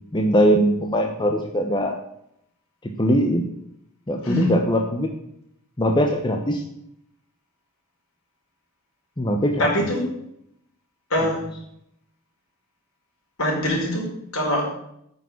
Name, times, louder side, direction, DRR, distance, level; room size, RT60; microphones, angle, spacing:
voice 1, 0.1-1.9 2.8-3.5 4.1-5.1 5.8-6.6 9.2-9.9, equal, 20° left, 2 dB, 1.1 m, -21 dB
voice 2, 9.6-10.1 11.1-11.4 13.4-14.1 14.3-14.7, left 1 dB, 70° left, -2 dB, 5.2 m, -23 dB
9.4 x 6.9 x 8.3 m, 0.74 s
head